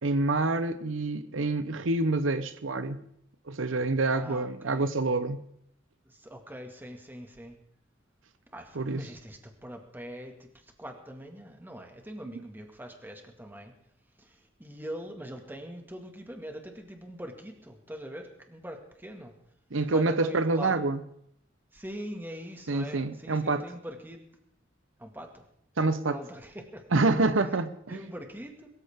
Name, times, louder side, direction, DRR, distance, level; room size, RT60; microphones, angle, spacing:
voice 1, 0.0-3.0 3.5-5.4 8.7-9.1 19.7-21.0 22.7-23.7 25.8-26.2 26.9-28.0, right 2 dB, 85° right, 12 dB, 0.9 m, -27 dB
voice 2, 4.1-4.9 6.1-7.6 8.5-13.7 14.2-19.3 19.8-20.9 21.7-24.2 25.0-25.4 26.1-26.8 27.9-28.7, equal, 10° right, 3 dB, 2.0 m, -42 dB
22.0 x 14.0 x 3.7 m, 0.71 s
head